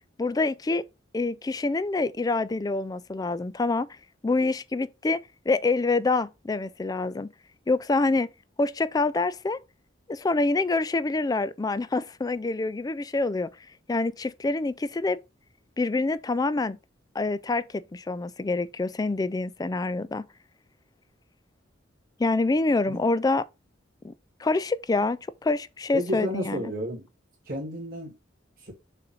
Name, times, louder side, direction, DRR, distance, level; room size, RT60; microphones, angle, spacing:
voice 1, 0.2-0.9 1.1-3.9 4.2-5.2 5.5-7.3 7.7-8.3 8.6-9.6 10.1-13.5 13.9-15.2 15.8-16.8 17.1-20.3 22.2-23.4 24.0-24.1 24.4-26.7, left 3 dB, 20° left, 0.3 m, -26 dB
voice 2, 25.9-27.0 27.5-28.2 28.6-28.7, equal, 45° right, 2.3 m, -32 dB
6.7 x 2.6 x 5.7 m
head